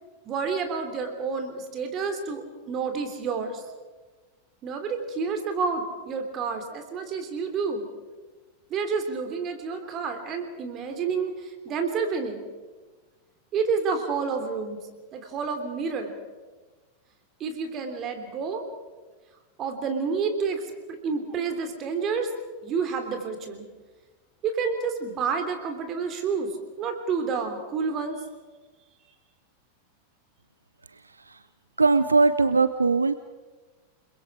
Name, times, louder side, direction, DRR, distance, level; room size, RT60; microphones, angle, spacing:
voice 1, 0.2-3.6 4.6-7.8 8.7-12.4 13.5-14.8 15.1-16.2 17.4-18.6 19.6-20.6 20.9-22.3 22.6-23.7 24.4-26.5 26.8-28.2, right 5 dB, 30° right, 6 dB, 3.2 m, -29 dB
voice 2, 31.0-31.4 31.8-33.1, right 3 dB, 80° right, 14 dB, 0.6 m, -21 dB
29.5 x 21.5 x 4.8 m, 1.3 s
figure-of-eight pair, 90°, 0 cm